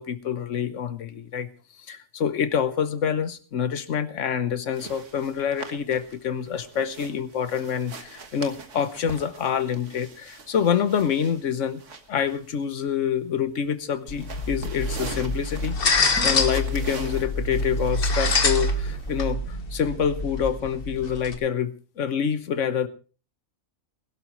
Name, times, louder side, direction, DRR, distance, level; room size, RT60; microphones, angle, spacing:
voice 1, 0.0-1.5 1.9-11.8 12.1-22.9, left 8 dB, 65° left, 12 dB, 1.3 m, -27 dB
sound 1, 4.7-19.3, right 4 dB, 65° right, 1.8 m, -43 dB
sound 2, 14.1-21.3, left 2 dB, 45° left, 1.5 m, -26 dB
sound 3, 16.2-17.7, right 3 dB, 10° right, 2.5 m, -42 dB
20.5 x 12.0 x 3.1 m, 0.35 s
omnidirectional pair, 1.4 m